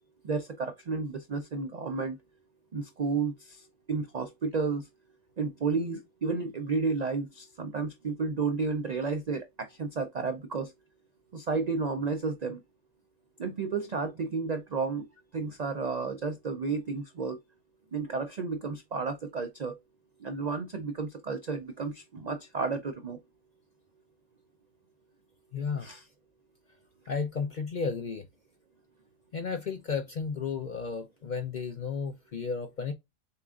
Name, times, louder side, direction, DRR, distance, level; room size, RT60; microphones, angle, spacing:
voice 1, 0.2-2.2 2.7-3.6 3.9-4.8 5.4-10.7 11.3-12.6 13.4-15.1 15.3-17.4 17.9-19.8 20.2-23.2 25.8-26.0, right 4 dB, 65° right, 0.4 m, -32 dB
voice 2, 25.5-25.9 27.1-28.3 29.3-32.9, left 5 dB, 50° left, 0.6 m, -33 dB
6.8 x 2.5 x 2.4 m
omnidirectional pair, 1.4 m